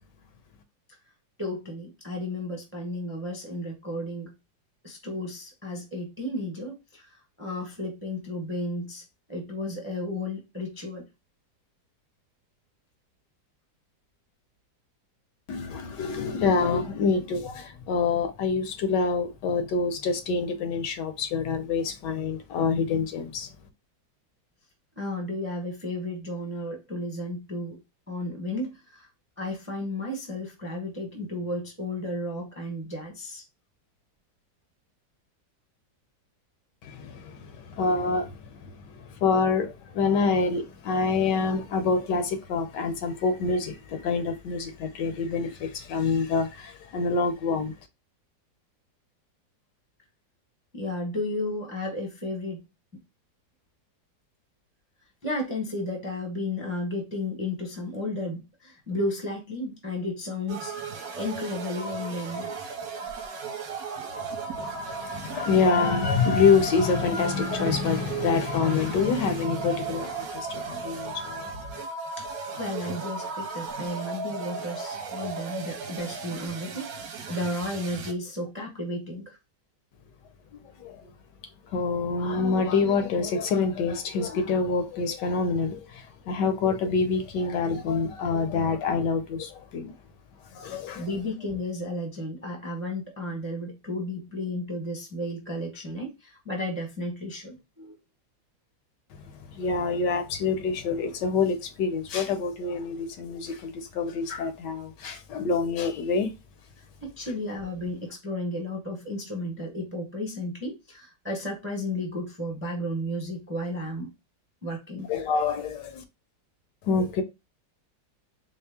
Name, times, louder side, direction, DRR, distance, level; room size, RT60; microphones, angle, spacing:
voice 1, 1.4-4.3 4.8-11.1 25.0-27.8 28.1-29.1 29.4-33.4 50.7-52.6 52.9-53.0 55.2-62.5 72.2-79.4 90.9-97.9 103.4-103.5 106.8-114.1 114.6-115.1, left 1 dB, 10° right, 0.7 m, -33 dB
voice 2, 15.5-23.5 36.8-38.4 39.2-47.7 64.6-71.5 80.8-81.0 81.7-89.9 90.5-91.1 99.5-106.3 115.1-116.0 116.8-117.2, left 4 dB, 75° left, 1.3 m, -26 dB
sound 1, 60.5-78.1, right 4 dB, 60° right, 1.1 m, -36 dB
4.3 x 2.0 x 3.4 m
omnidirectional pair, 1.9 m